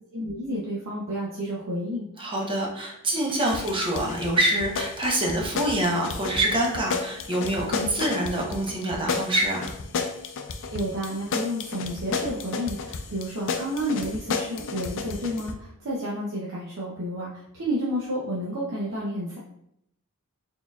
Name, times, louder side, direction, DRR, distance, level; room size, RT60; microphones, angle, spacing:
voice 1, 0.1-2.0 10.7-19.4, equal, 65° right, -6 dB, 0.8 m, -30 dB
voice 2, 2.2-9.7, right 1 dB, 25° right, -2 dB, 0.9 m, -26 dB
sound 1, 3.5-15.5, left 4 dB, 60° left, 0.4 m, -32 dB
4.2 x 3.8 x 2.4 m, 0.76 s
head